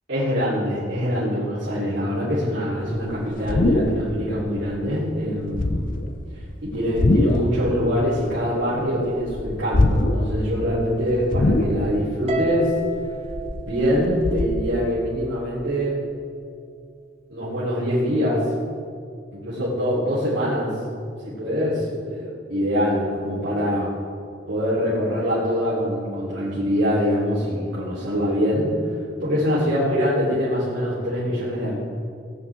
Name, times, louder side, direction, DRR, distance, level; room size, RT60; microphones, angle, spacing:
voice 1, 0.1-6.1 6.6-12.7 13.6-16.0 17.3-18.5 19.3-20.8 21.2-23.9 24.5-28.8 29.2-31.7, equal, 85° right, -12 dB, 3.5 m, -24 dB
sound 1, 2.9-4.3 4.5-4.9 5.4-6.1 6.8-7.6 7.9-8.9 9.2-10.4 10.7-10.8 11.3-12.1 12.5-14.4, left 2 dB, 50° left, 0.7 m, -22 dB
Harp, 12.3-14.7, right 2 dB, 35° right, 1.3 m, -31 dB
18.5 x 9.8 x 3.6 m, 2.3 s
head